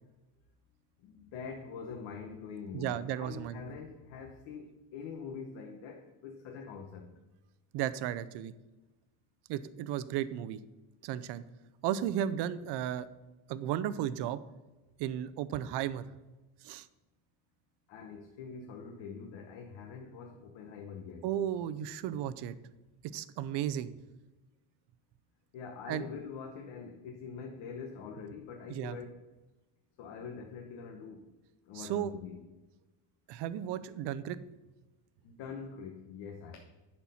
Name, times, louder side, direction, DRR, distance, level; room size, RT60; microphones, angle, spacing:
voice 1, 1.0-7.1 17.9-21.3 25.5-29.2 30.0-31.2 31.6-32.4 35.2-36.6, left 5 dB, 70° left, 2 dB, 1.1 m, -44 dB
voice 2, 2.7-3.6 7.7-8.5 9.5-10.6 11.0-11.4 11.8-13.1 13.5-14.4 15.0-16.1 16.6-16.9 21.2-22.5 23.1-23.9 25.9-26.0 28.7-29.0 31.7-32.1 33.3-34.4, right 11 dB, 60° right, 15 dB, 0.6 m, -34 dB
10.5 x 4.4 x 5.5 m, 1.1 s
cardioid pair, 170°, 47 cm